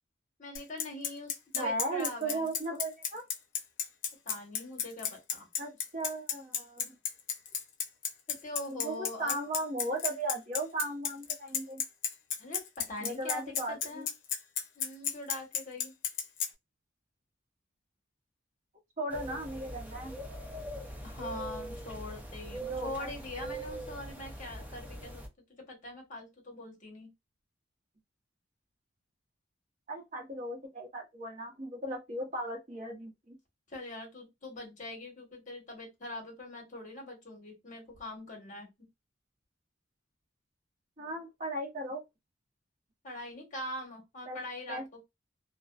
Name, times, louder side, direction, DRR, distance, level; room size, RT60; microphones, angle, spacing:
voice 1, 0.4-2.5 4.2-5.5 8.3-9.4 12.4-14.1 14.7-15.9 21.0-25.2 25.5-27.1 33.7-38.7 43.0-45.0, left 1 dB, 40° left, 1.2 m, -43 dB
Bicycle, 0.6-16.5, left 8 dB, 65° left, 0.6 m, -32 dB
voice 2, 1.5-3.2 5.6-7.0 8.7-11.8 13.0-14.0 19.0-20.1 22.6-23.1 29.9-33.4 41.0-42.0 44.3-44.4 44.7-45.0, right 1 dB, 40° right, 0.9 m, -37 dB
sound 1, 19.1-25.3, right 1 dB, 10° right, 0.4 m, -42 dB
2.5 x 2.1 x 2.4 m
head